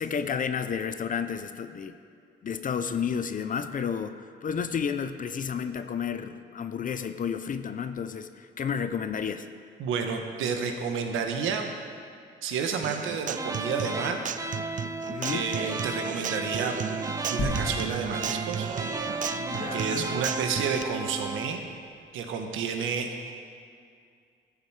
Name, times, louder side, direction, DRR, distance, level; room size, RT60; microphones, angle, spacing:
voice 1, 0.0-2.0 2.4-9.5 15.1-15.5 19.5-20.1, left 7 dB, 40° left, 10 dB, 0.6 m, -31 dB
voice 2, 9.8-11.7 12.4-14.2 15.3-16.8 17.3-18.7 19.7-21.7 22.1-23.1, right 6 dB, 85° right, 4 dB, 1.1 m, -30 dB
Human voice / Acoustic guitar, 12.8-20.8, right 8 dB, 40° right, 0.4 m, -35 dB
sound 1, 13.4-21.6, right 2 dB, 15° right, 0.8 m, -35 dB
sound 2, 17.4-21.0 21.6-21.7, left 2 dB, 65° left, 2.6 m, -37 dB
14.0 x 7.4 x 4.7 m, 2.3 s
cardioid pair, 90°, 20 cm